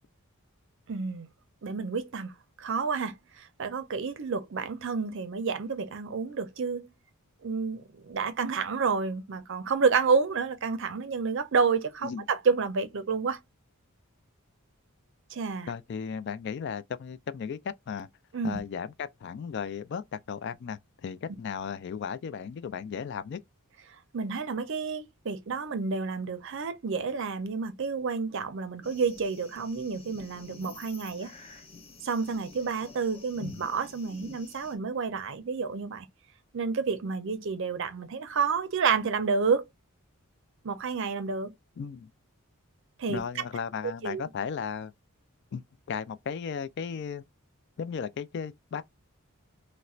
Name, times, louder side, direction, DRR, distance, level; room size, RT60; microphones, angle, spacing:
voice 1, 0.9-1.3 1.6-2.3 2.6-6.9 7.4-13.4 15.3-15.7 18.3-18.6 24.1-31.3 32.0-36.1 36.5-39.6 40.6-41.5 43.0-43.2 44.0-44.2, right 5 dB, 55° right, 0.5 m, -29 dB
voice 2, 15.7-18.1 18.4-23.4 33.4-33.6 41.8-42.1 43.1-44.9 45.5-45.6 45.9-47.2 47.8-48.8, left 6 dB, 50° left, 0.3 m, -35 dB
sound 1, 28.8-34.7, left 3 dB, 25° left, 0.7 m, -50 dB
4.1 x 2.1 x 2.4 m
head